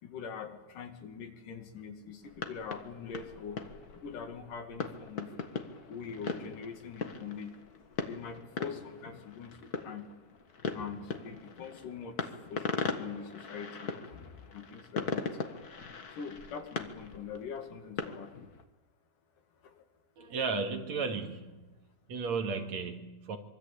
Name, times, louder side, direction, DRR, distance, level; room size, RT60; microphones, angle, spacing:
voice 1, 0.0-3.6 3.9-5.3 5.9-7.5 8.0-10.1 10.7-14.2 14.5-15.3 16.1-18.3 19.6-19.9, left 6 dB, 80° left, 6 dB, 3.8 m, -43 dB
sound 1, 2.2-18.6, left 5 dB, 40° left, 1.4 m, -40 dB
voice 2, 20.2-21.7 22.1-23.4, right 4 dB, 60° right, 5 dB, 3.2 m, -34 dB
24.5 x 23.5 x 8.6 m, 1.1 s
omnidirectional pair, 3.7 m